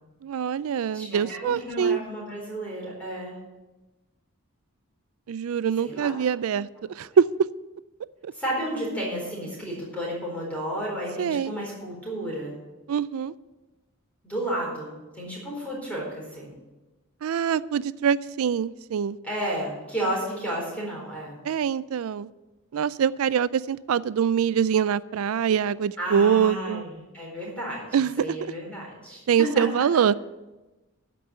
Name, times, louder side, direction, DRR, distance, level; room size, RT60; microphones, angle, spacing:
voice 1, 0.2-2.0 5.3-6.7 7.0-7.2 8.2-8.3 11.2-11.5 12.9-13.3 17.2-19.2 21.4-22.3 22.7-26.9 27.9-28.4 29.3-30.1, right 7 dB, 80° right, 18 dB, 0.4 m, -24 dB
voice 2, 0.9-3.4 5.8-6.1 7.1-7.2 8.3-12.5 14.2-16.5 19.2-21.4 26.0-30.0, right 1 dB, 5° left, -4 dB, 4.2 m, -32 dB
13.5 x 5.3 x 8.6 m, 1.1 s
head